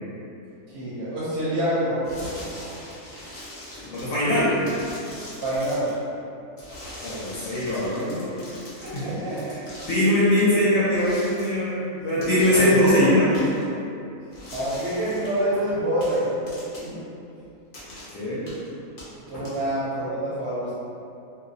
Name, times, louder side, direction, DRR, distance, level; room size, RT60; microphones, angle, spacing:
voice 1, 0.7-2.5 5.4-5.9 8.8-9.5 12.5-13.0 14.5-16.4 16.8-17.0 18.2-18.5 19.3-20.7, right 1 dB, 65° right, -9 dB, 0.7 m, -27 dB
sound 1, 2.0-6.0 6.6-10.5 10.9-11.6 12.2-12.6 12.9-13.0 13.3-13.6 14.3-15.4 16.0-17.0 17.7-18.1 18.5-18.7 19.0-19.8, left 1 dB, 45° left, 0.6 m, -42 dB
voice 2, 3.9-4.6 7.0-8.4 8.8-9.5 9.9-13.3 18.1-18.4 19.3-19.5, left 1 dB, 75° left, -10 dB, 1.0 m, -22 dB
2.5 x 2.0 x 2.5 m, 2.7 s
omnidirectional pair, 1.4 m